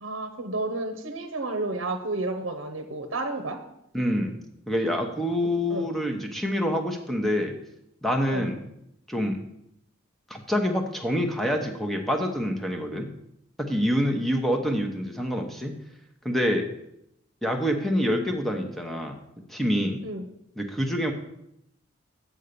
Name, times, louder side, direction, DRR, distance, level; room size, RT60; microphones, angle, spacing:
voice 1, 0.0-3.6 5.7-5.9 8.3-8.5 20.0-20.2, right 2 dB, 70° right, 6 dB, 0.8 m, -31 dB
voice 2, 3.9-4.3 4.7-7.5 8.0-8.6 9.1-9.4 10.3-13.1 13.6-15.8 16.2-16.7 17.4-19.1 19.5-20.0 20.6-21.1, equal, ahead, 2 dB, 0.9 m, -26 dB
7.6 x 5.5 x 6.8 m, 0.80 s
head